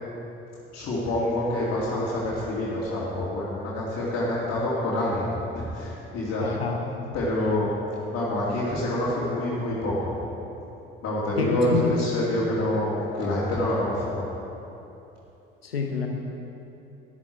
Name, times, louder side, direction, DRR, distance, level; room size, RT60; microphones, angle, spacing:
voice 1, 0.7-6.5 7.1-7.7 8.1-10.1 11.0-14.2, left 1 dB, 55° left, -8 dB, 2.5 m, -27 dB
voice 2, 6.4-6.8 11.4-12.0 15.6-16.1, left 5 dB, 90° left, 2 dB, 1.1 m, -27 dB
13.0 x 9.9 x 4.6 m, 3.0 s
figure-of-eight pair, 50°, 29 cm